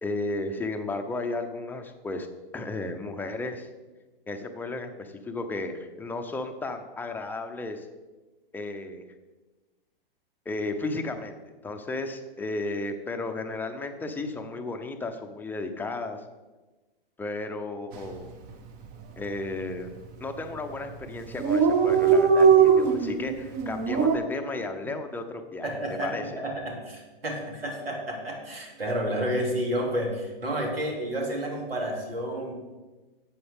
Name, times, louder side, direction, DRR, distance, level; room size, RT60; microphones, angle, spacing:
voice 1, 0.0-2.3 2.5-3.7 4.3-7.9 8.5-9.0 10.5-11.4 11.6-16.2 17.2-18.3 19.2-19.9 20.2-25.7 26.0-26.2, left 2 dB, 5° left, 5 dB, 0.7 m, -34 dB
Dog, 17.9-18.2 18.5-18.6 18.8-19.5 20.1-20.4 20.7-20.8 21.0-21.1 21.2-24.2, right 6 dB, 30° right, 1.0 m, -20 dB
voice 2, 25.6-32.5, equal, 85° right, 0 dB, 2.8 m, -30 dB
12.0 x 7.8 x 3.6 m, 1.2 s
hypercardioid pair, 115°, 29 cm